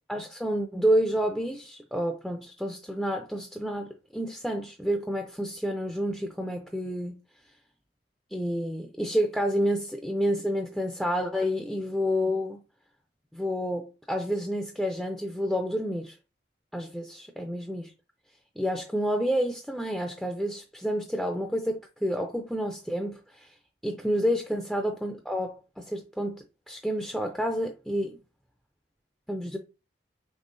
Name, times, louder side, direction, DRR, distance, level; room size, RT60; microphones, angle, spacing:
voice 1, 0.0-7.1 8.3-12.6 13.3-16.2 16.7-17.9 18.6-23.5 23.8-28.2 29.3-29.6, equal, ahead, 0.3 m, -29 dB
5.5 x 3.2 x 2.5 m
head